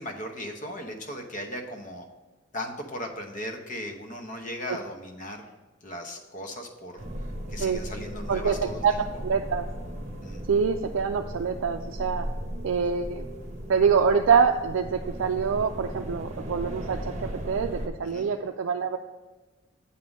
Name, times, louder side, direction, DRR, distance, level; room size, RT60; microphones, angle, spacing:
voice 1, 0.0-2.0 2.5-5.5 5.8-7.0 7.5-8.8 10.2-10.4 18.0-18.3, left 1 dB, 40° left, 3 dB, 1.0 m, -37 dB
sound 1, 7.0-17.9, equal, 35° right, 1.0 m, -36 dB
voice 2, 8.3-8.9 9.2-9.6 10.5-12.3 12.6-13.2 13.7-19.0, right 6 dB, 70° right, 3 dB, 0.4 m, -25 dB
8.4 x 3.7 x 6.2 m, 1.3 s
head